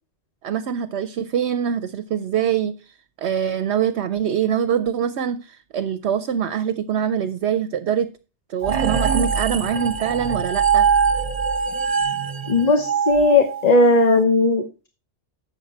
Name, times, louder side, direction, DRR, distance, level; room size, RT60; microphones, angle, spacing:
voice 1, 0.4-2.7 3.2-8.1 8.5-10.9, right 8 dB, 70° right, 0.9 m, -24 dB
sound 1, 8.6-14.1, right 6 dB, 30° right, 1.1 m, -22 dB
voice 2, 12.5-14.9, left 2 dB, 35° left, 1.0 m, -17 dB
8.6 x 7.3 x 4.3 m
omnidirectional pair, 1.2 m